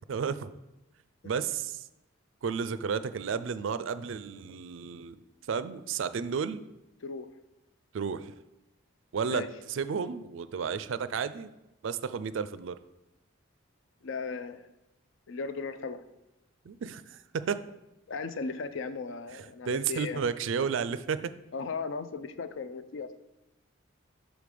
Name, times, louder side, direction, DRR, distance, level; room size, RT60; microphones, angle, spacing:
voice 1, 0.1-0.5 1.2-1.9 2.4-5.2 5.5-6.6 7.9-8.3 9.1-11.5 11.8-12.8 16.6-17.6 19.3-21.3, right 6 dB, 65° right, 14 dB, 0.4 m, -32 dB
voice 2, 14.0-14.7 15.3-16.0 18.1-20.2 21.5-23.3, left 4 dB, 65° left, 12 dB, 0.4 m, -36 dB
6.2 x 5.2 x 4.9 m, 0.94 s
head